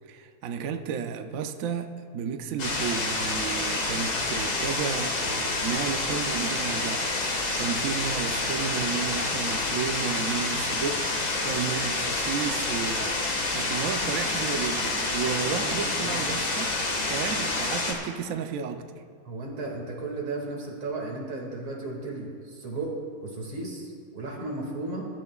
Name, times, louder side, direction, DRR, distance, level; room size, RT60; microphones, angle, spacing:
voice 1, 0.1-16.7 17.1-18.8, right 7 dB, 65° right, 6 dB, 0.8 m, -33 dB
sound 1, 2.6-17.9, left 2 dB, 50° left, 2.1 m, -28 dB
voice 2, 15.4-15.8 16.0-16.2 19.2-23.0 23.2-25.1, right 2 dB, 85° right, -1 dB, 3.2 m, -35 dB
22.5 x 12.0 x 2.4 m, 2.1 s
omnidirectional pair, 2.2 m